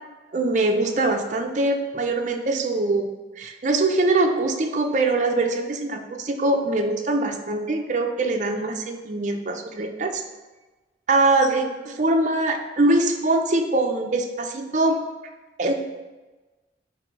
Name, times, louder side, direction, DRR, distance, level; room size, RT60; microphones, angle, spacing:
voice 1, 0.3-3.1 3.4-10.2 11.1-15.0 15.6-15.7, right 2 dB, 45° right, 4 dB, 0.5 m, -23 dB
7.8 x 2.7 x 4.5 m, 1.2 s
head